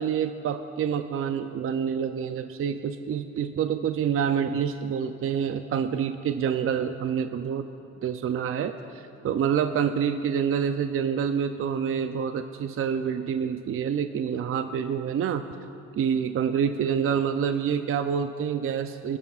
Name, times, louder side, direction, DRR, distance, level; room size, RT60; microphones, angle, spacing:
voice 1, 0.0-7.7 8.0-15.5 15.9-19.2, right 7 dB, 45° right, 8 dB, 0.5 m, -27 dB
20.5 x 13.0 x 2.4 m, 2.7 s
cardioid pair, 90°, 30 cm